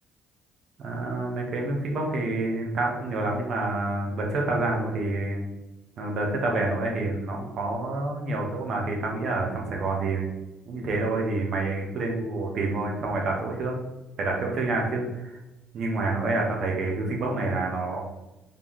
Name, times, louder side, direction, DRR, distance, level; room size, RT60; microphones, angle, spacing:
voice 1, 0.8-5.4 6.0-10.3 10.7-13.7 14.2-15.4 15.7-18.0, right 2 dB, 60° right, 0 dB, 1.2 m, -28 dB
4.0 x 3.6 x 3.1 m, 1.0 s
hypercardioid pair, 55°, 0 cm